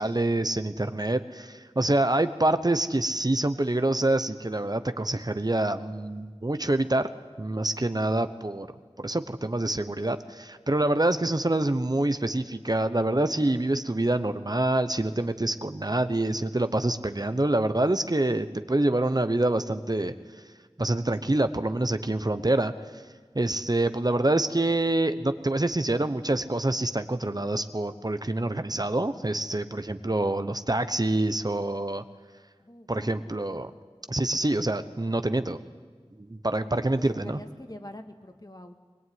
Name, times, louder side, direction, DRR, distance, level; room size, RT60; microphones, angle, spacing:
voice 1, 0.0-7.1 7.4-8.7 9.0-20.1 20.8-22.7 23.3-32.0 32.9-33.7 34.1-35.6 36.2-37.4, right 2 dB, 40° right, 10 dB, 1.0 m, -26 dB
voice 2, 32.6-33.3 36.6-38.8, left 1 dB, 40° left, 5 dB, 2.0 m, -45 dB
22.0 x 20.5 x 9.5 m, 1.5 s
wide cardioid pair, 40°, 10 cm